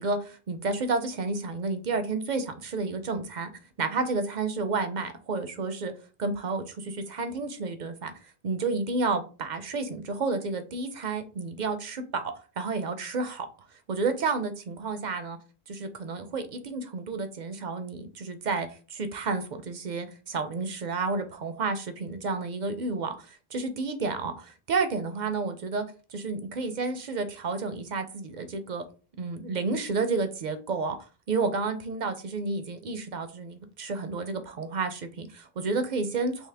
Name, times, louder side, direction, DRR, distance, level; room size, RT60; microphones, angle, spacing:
voice 1, 0.0-3.5 3.8-5.9 6.2-8.1 8.4-13.5 13.9-15.4 15.7-25.8 26.1-28.8 29.2-31.0 31.3-36.5, right 3 dB, 55° right, 0.6 m, -31 dB
5.4 x 2.0 x 3.3 m
omnidirectional pair, 1.1 m